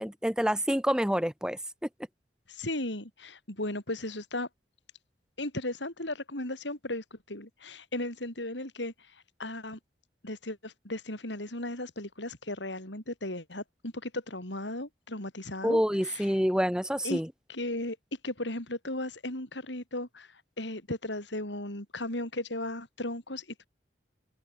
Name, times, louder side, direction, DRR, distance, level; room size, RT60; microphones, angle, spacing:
voice 1, 0.0-1.6 15.6-17.3, equal, 5° right, 2.9 m, -27 dB
voice 2, 2.5-4.5 5.4-8.9 9.4-9.8 10.2-16.3 17.0-17.2 17.5-18.0 18.2-20.3 20.6-23.7, left 1 dB, 90° left, 7.3 m, -36 dB
open air
head